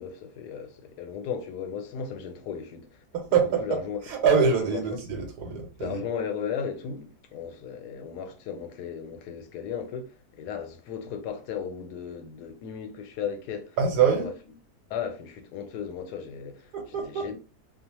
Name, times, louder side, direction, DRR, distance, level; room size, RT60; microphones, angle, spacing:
voice 1, 0.0-3.0 3.6-4.0 4.4-4.8 5.8-14.3 14.9-16.7 17.0-17.3, left 7 dB, 85° left, 1.1 m, -36 dB
voice 2, 3.1-6.0 13.8-14.3 16.7-17.3, right 6 dB, 90° right, 1.2 m, -25 dB
2.6 x 2.0 x 2.9 m
omnidirectional pair, 1.7 m